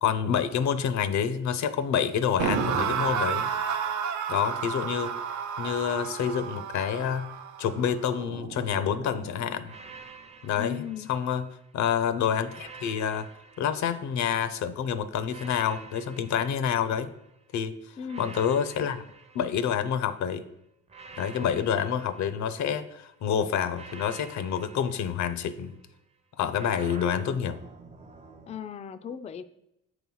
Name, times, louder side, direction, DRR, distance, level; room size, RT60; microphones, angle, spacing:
voice 1, 0.0-3.5 4.3-5.1 5.6-7.3 7.6-9.7 10.4-10.8 11.1-11.4 11.7-13.3 13.6-17.1 17.5-17.7 18.2-19.0 19.3-20.4 21.2-25.8 26.4-27.6, left 8 dB, 70° left, 13 dB, 0.6 m, -28 dB
sound 1, 2.4-9.5, right 7 dB, 75° right, 0.7 m, -32 dB
sound 2, 9.6-11.8 12.4-14.6 15.3-17.4 18.0-20.2 20.9-23.0 23.7-25.9 26.5-28.6, right 4 dB, 20° right, 0.6 m, -49 dB
voice 2, 10.5-11.1 18.0-18.3 28.5-29.4, left 8 dB, 25° left, 10 dB, 0.3 m, -37 dB
7.9 x 3.0 x 5.4 m, 0.83 s
cardioid pair, 90°, 30 cm